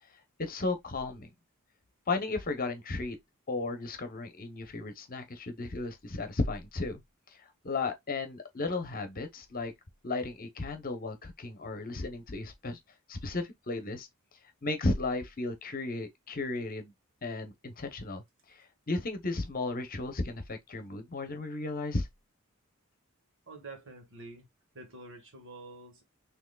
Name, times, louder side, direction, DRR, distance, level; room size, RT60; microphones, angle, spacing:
voice 1, 0.4-1.3 2.1-3.2 3.5-7.0 7.3-9.7 10.0-12.8 13.1-14.1 14.6-16.9 17.2-18.2 18.5-22.1, left 3 dB, 40° left, 0.9 m, -34 dB
voice 2, 23.5-24.5 24.7-26.0, right 2 dB, 60° right, 1.7 m, -47 dB
6.2 x 2.9 x 2.3 m
head